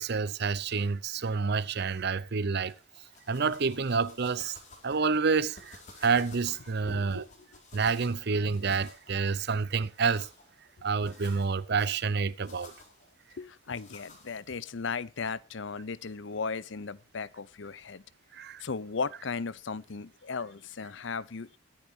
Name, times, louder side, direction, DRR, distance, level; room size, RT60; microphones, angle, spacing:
voice 1, 0.0-2.7 3.3-4.6 4.8-7.3 7.7-10.3 10.8-12.7 18.3-18.6, right 5 dB, 55° right, 0.6 m, -28 dB
sound 1, 2.6-14.6, left 3 dB, 40° left, 4.9 m, -54 dB
voice 2, 6.8-7.5 13.4-18.0 18.6-21.6, left 5 dB, 65° left, 0.7 m, -36 dB
22.5 x 10.0 x 2.8 m
head